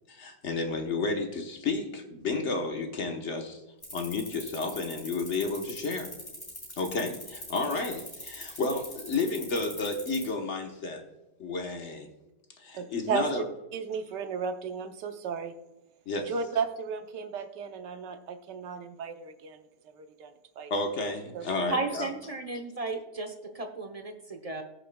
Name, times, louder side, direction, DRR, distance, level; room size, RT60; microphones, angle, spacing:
voice 1, 0.1-3.6 3.9-6.1 6.7-11.0 11.4-12.1 12.6-13.4 16.1-16.3 20.7-22.0, left 3 dB, 45° left, 3 dB, 1.3 m, -31 dB
sound 1, 3.8-10.3, left 1 dB, 25° left, 3.6 m, -42 dB
voice 2, 12.7-13.4 13.7-15.5 16.3-19.6 19.9-20.7 21.3-21.7, right 6 dB, 80° right, 8 dB, 1.4 m, -34 dB
voice 3, 21.7-24.6, right 3 dB, 35° right, 5 dB, 0.6 m, -34 dB
19.0 x 6.6 x 2.3 m, 1.0 s
omnidirectional pair, 1.8 m